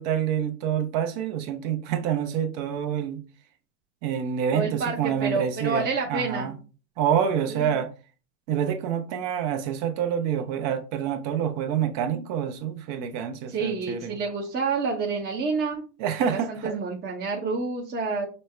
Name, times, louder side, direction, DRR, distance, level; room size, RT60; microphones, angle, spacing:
voice 1, 0.0-3.2 4.0-6.5 7.0-7.9 8.5-14.2 16.0-16.8, right 8 dB, 55° right, 0.9 m, -27 dB
voice 2, 4.5-6.5 7.5-7.7 13.5-15.8 16.3-18.3, right 4 dB, 20° right, 0.7 m, -28 dB
5.4 x 2.1 x 3.2 m
hypercardioid pair, 95°, 48 cm